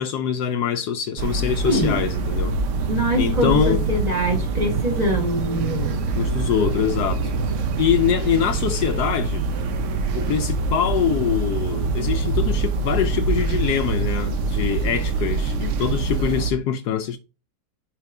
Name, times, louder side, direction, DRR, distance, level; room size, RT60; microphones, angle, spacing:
voice 1, 0.0-2.5 3.2-3.9 6.1-7.2 7.8-9.4 10.1-17.2, left 9 dB, 75° left, 1.0 m, -24 dB
sound 1, 1.2-16.5, right 4 dB, 70° right, 0.7 m, -24 dB
voice 2, 1.6-2.0 2.9-6.0, equal, 25° right, 1.1 m, -23 dB
5.9 x 3.4 x 4.7 m
omnidirectional pair, 1.9 m